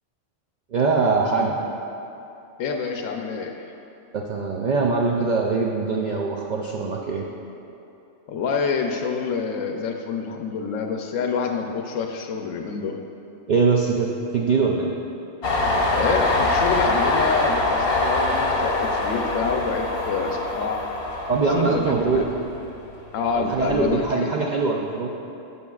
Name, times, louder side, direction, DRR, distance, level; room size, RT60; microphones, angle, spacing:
voice 1, 0.7-1.6 4.1-7.2 13.5-14.9 21.3-22.3 23.4-25.1, right 4 dB, 70° right, -1 dB, 0.4 m, -22 dB
voice 2, 2.6-3.6 8.3-13.0 15.9-20.8 21.5-22.3 23.1-24.3, left 5 dB, 80° left, 3 dB, 0.9 m, -27 dB
Train, 15.4-22.8 23.2-24.0, left 2 dB, 55° left, 0.9 m, -24 dB
10.5 x 6.5 x 2.3 m, 2.9 s
omnidirectional pair, 1.3 m